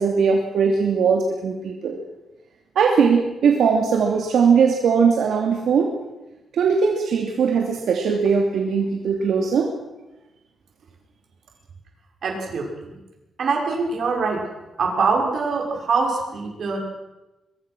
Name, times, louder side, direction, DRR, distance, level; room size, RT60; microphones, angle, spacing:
voice 1, 0.0-2.0 2.8-5.9 6.5-9.7, right 6 dB, 75° right, 1 dB, 2.8 m, -19 dB
voice 2, 12.2-12.7 13.4-14.4 14.8-16.8, right 4 dB, 50° right, 1 dB, 6.1 m, -23 dB
24.0 x 22.5 x 6.2 m, 1.0 s
wide cardioid pair, 180°, 0 cm